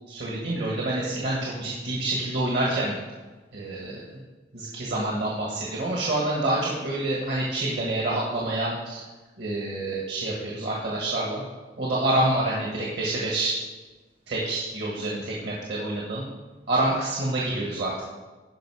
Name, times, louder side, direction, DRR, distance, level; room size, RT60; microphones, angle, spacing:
voice 1, 0.1-3.0 3.5-4.2 4.5-9.0 9.4-11.4 11.8-13.5 14.3-16.3 16.7-18.0, right 1 dB, 70° right, -3 dB, 1.7 m, -27 dB
11.5 x 5.4 x 4.9 m, 1.2 s
head